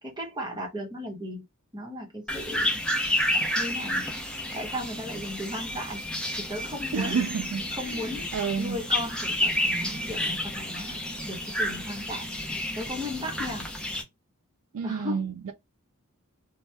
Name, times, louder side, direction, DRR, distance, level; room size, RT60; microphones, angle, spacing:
voice 1, 0.0-1.4 1.7-2.8 3.5-4.0 4.5-6.0 6.4-7.2 7.7-8.3 8.6-12.3 12.7-13.6 14.8-15.3, left 1 dB, 20° right, 1.0 m, -36 dB
sound 1, 2.3-14.0, left 1 dB, 5° left, 0.7 m, -30 dB
voice 2, 6.9-7.6 7.9-8.0 8.3-8.8 14.7-15.5, right 6 dB, 65° right, 0.4 m, -29 dB
2.8 x 2.2 x 3.3 m
head